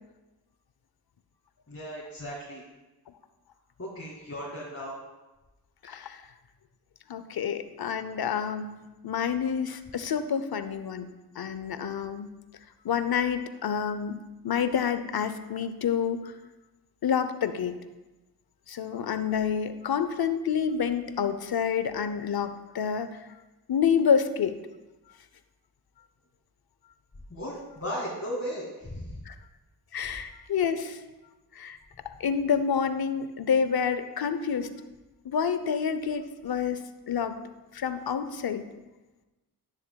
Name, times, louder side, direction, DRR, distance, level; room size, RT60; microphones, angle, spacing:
voice 1, 1.7-2.6 3.8-5.0 27.3-29.2, equal, 35° left, -6 dB, 2.2 m, -36 dB
voice 2, 5.8-6.2 7.1-11.1 11.4-12.3 12.8-14.2 14.4-16.3 17.0-17.8 18.7-23.2 23.7-24.6 29.3-29.4 29.9-31.0 31.5-31.8 32.2-34.7 35.2-37.4 37.7-38.6, left 7 dB, 65° left, 11 dB, 0.7 m, -28 dB
10.5 x 10.0 x 2.3 m, 1.1 s
cardioid pair, 60°, 40 cm